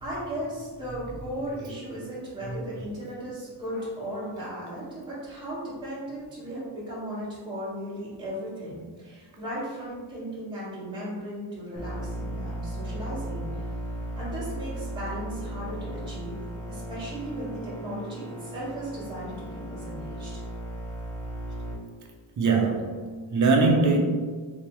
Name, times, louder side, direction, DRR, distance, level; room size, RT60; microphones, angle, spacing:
voice 1, 0.0-16.4 16.7-20.4, right 1 dB, 10° right, -12 dB, 1.3 m, -36 dB
sound 1, 11.8-21.7, right 1 dB, 15° left, 0.7 m, -36 dB
voice 2, 22.4-24.0, right 4 dB, 40° right, 1 dB, 0.6 m, -22 dB
3.4 x 3.2 x 3.0 m, 1.5 s
wide cardioid pair, 175°, 46 cm